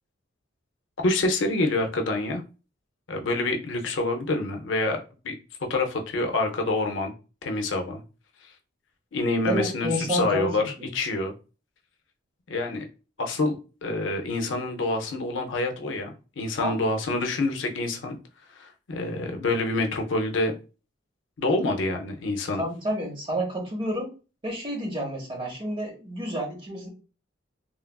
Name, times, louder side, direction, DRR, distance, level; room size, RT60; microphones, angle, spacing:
voice 1, 1.0-2.4 3.1-5.3 5.7-7.1 7.4-8.0 9.1-11.3 12.5-12.9 13.2-18.2 18.5-20.6 21.4-22.6, left 2 dB, 75° left, 3 dB, 0.6 m, -27 dB
voice 2, 9.5-10.9 16.6-16.8 22.6-24.1 24.4-26.9, equal, 25° right, 0 dB, 0.9 m, -29 dB
3.1 x 2.3 x 2.2 m, 0.33 s
head